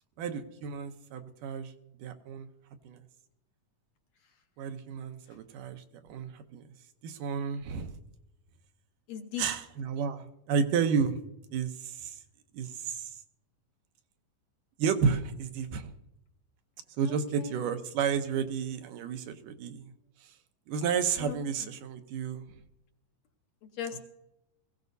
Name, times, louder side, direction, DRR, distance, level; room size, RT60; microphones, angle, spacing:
voice 1, 0.2-1.7 2.0-2.5 2.8-3.0 4.6-5.8 6.1-6.6 7.0-8.0 9.4-11.2 11.5-12.2 12.5-13.1 14.8-15.9 17.0-19.9 20.7-22.4, right 6 dB, 80° right, 7 dB, 2.5 m, -31 dB
voice 2, 9.1-9.4 17.1-17.5 21.2-21.4 23.8-24.0, left 9 dB, 65° left, 3 dB, 2.1 m, -38 dB
21.0 x 16.0 x 2.7 m, 0.85 s
omnidirectional pair, 3.7 m